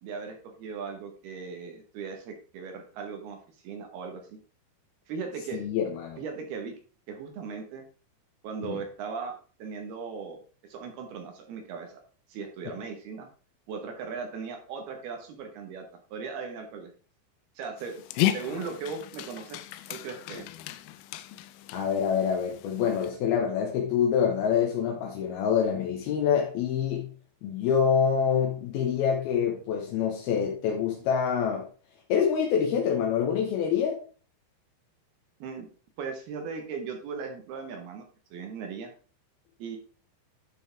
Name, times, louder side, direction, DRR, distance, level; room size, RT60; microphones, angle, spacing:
voice 1, 0.0-3.4 3.6-4.4 5.1-5.7 6.2-6.7 7.1-7.9 8.4-9.3 9.6-10.4 10.7-12.0 12.3-13.3 13.7-15.8 16.1-16.9 17.6-18.0 18.3-19.6 19.9-20.5 35.4-35.7 36.0-38.0 38.3-38.9 39.6-39.8, right 5 dB, 65° right, 3 dB, 2.7 m, -38 dB
voice 2, 5.5-6.2 8.6-8.8 18.5-18.6 21.7-27.1 27.4-31.7 32.1-34.0, left 7 dB, 70° left, 0 dB, 2.5 m, -26 dB
Dog, 17.8-23.1, left 13 dB, 90° left, 3.2 m, -34 dB
12.0 x 6.3 x 3.5 m, 0.40 s
omnidirectional pair, 5.8 m